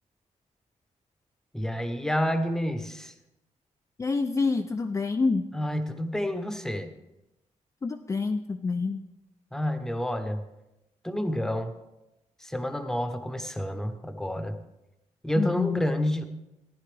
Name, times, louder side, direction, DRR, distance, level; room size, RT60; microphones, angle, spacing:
voice 1, 1.5-3.1 5.5-6.9 9.5-10.5 11.0-11.7 12.4-14.6 15.2-16.2, equal, 5° left, 8 dB, 0.8 m, -29 dB
voice 2, 4.0-5.4 7.8-9.0 15.4-15.8, left 4 dB, 25° left, 5 dB, 0.4 m, -27 dB
15.0 x 10.5 x 3.4 m, 0.94 s
wide cardioid pair, 145°, 12 cm